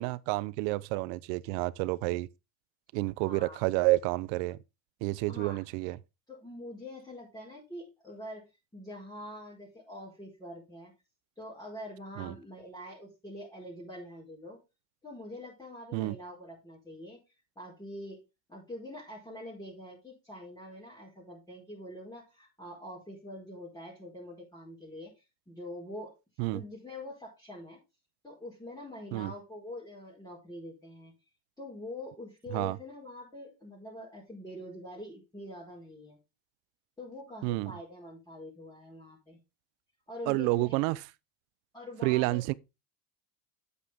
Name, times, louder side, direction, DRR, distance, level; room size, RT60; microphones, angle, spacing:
voice 1, 0.0-2.3 2.9-4.6 5.0-6.0 12.2-12.3 15.9-16.2 26.4-26.6 29.1-29.3 32.5-32.8 37.4-37.7 40.3-41.0 42.0-42.5, right 21 dB, 85° right, 0.7 m, -29 dB
voice 2, 3.2-3.6 5.3-5.6 6.3-10.9 11.4-14.6 15.0-17.2 17.6-18.2 18.5-26.2 26.5-27.8 28.2-31.1 31.6-36.2 37.0-39.4 40.1-40.8 41.7-42.4, left 1 dB, 10° left, 4.5 m, -45 dB
8.5 x 8.1 x 3.6 m
supercardioid pair, 100°, 40 cm